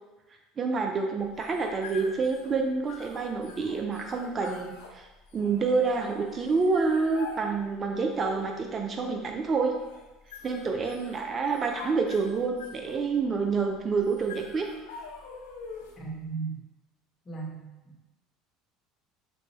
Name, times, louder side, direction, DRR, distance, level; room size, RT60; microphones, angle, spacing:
voice 1, 0.6-5.1 5.3-9.7 10.4-14.7, right 4 dB, 35° right, 3 dB, 0.4 m, -28 dB
sound 1, 1.2-16.1, left 5 dB, 85° left, 0.5 m, -46 dB
voice 2, 16.0-16.6 17.2-17.9, right 4 dB, 30° left, -2 dB, 1.0 m, -36 dB
3.8 x 2.2 x 3.2 m, 1.1 s
hypercardioid pair, 85°, 0 cm